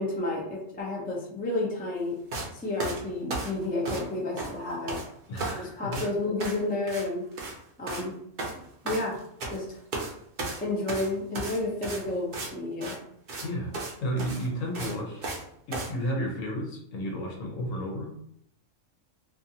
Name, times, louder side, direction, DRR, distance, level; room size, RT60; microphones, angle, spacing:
voice 1, 0.0-2.2 2.5-5.0 5.5-7.2 7.8-8.1 8.8-9.2 9.5-9.8 10.6-12.9, left 2 dB, 15° left, -3 dB, 0.4 m, -31 dB
sound 1, 2.3-2.5 2.8-4.1 4.4-5.1 5.3-5.6 5.9-6.1 6.4-6.6 6.9-7.1 7.3-7.6 7.9-8.1 8.4-9.6 9.9-10.1 10.4-12.5 12.8-13.0 13.3-13.5 13.7-13.9 14.2-15.4 15.7-15.9, right 2 dB, 50° right, 0.6 m, -34 dB
voice 2, 5.3-6.0 13.4-13.7 14.0-15.3 15.7-18.1, equal, 75° left, 0 dB, 1.1 m, -32 dB
2.5 x 2.4 x 2.7 m, 0.70 s
omnidirectional pair, 1.3 m